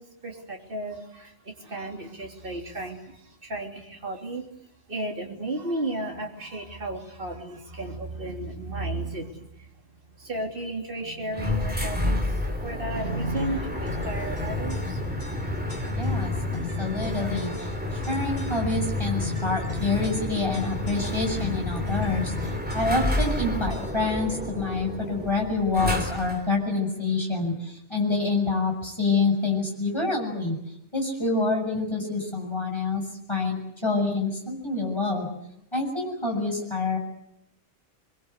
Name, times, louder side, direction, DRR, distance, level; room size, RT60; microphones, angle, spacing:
voice 1, 0.0-4.5 4.9-9.7 10.2-15.1 15.6-15.7, right 1 dB, 50° right, 0 dB, 3.6 m, -34 dB
sound 1, 11.3-26.5, left 1 dB, 10° right, 3.3 m, -30 dB
sound 2, 13.4-24.2, left 6 dB, 40° left, 7.7 m, -41 dB
voice 2, 15.9-16.3 16.8-30.6 30.9-33.0 33.3-35.3 35.7-37.0, left 3 dB, 25° left, 1 dB, 7.4 m, -27 dB
24.0 x 23.5 x 8.3 m, 0.78 s
omnidirectional pair, 1.2 m